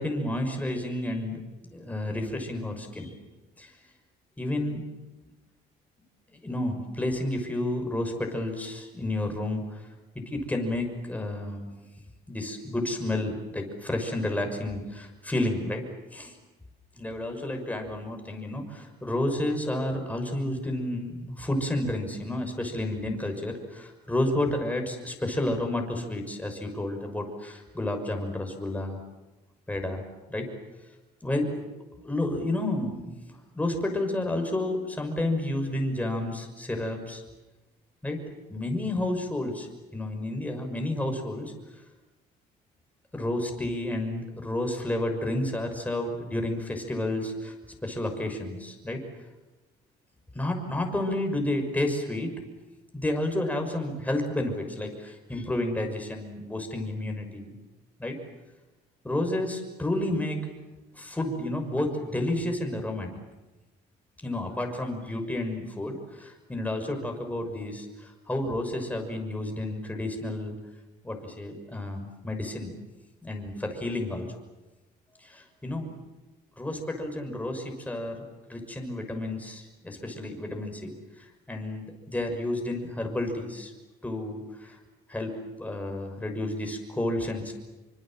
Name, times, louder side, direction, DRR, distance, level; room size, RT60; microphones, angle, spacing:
voice 1, 0.0-3.1 3.6-3.7 4.4-4.8 6.3-9.8 10.1-11.7 12.3-15.8 16.1-16.3 17.0-29.0 29.7-30.0 30.3-30.5 31.2-31.7 32.0-37.2 38.0-38.2 38.5-39.7 39.9-41.5 43.1-47.5 47.8-49.0 50.3-52.3 52.9-57.5 58.0-58.2 59.0-60.4 60.9-63.1 64.2-70.5 71.0-72.7 73.2-74.3 75.2-75.9 76.6-80.9 81.5-83.7 84.0-84.8 85.1-87.5, left 1 dB, 10° left, 3 dB, 6.1 m, -31 dB
27.5 x 25.0 x 7.7 m, 1.1 s
cardioid pair, 110°, 17 cm